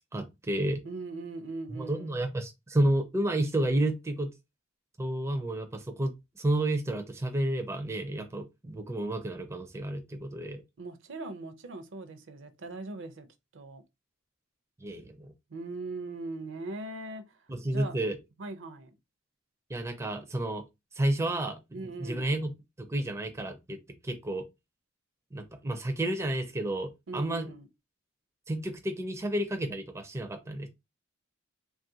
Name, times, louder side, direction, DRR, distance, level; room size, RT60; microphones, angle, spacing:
voice 1, 0.1-0.8 1.7-4.3 5.0-10.6 14.8-15.3 17.5-18.2 19.7-20.6 21.0-22.5 22.8-23.8 24.0-24.4 25.3-27.5 28.5-30.7, right 1 dB, 15° right, 0.4 m, -31 dB
voice 2, 0.8-2.2 10.8-13.3 13.5-13.8 15.5-17.4 17.7-18.0 18.4-18.9 21.7-22.3 27.1-27.7, right 2 dB, 65° right, 0.5 m, -40 dB
3.2 x 2.3 x 2.6 m
head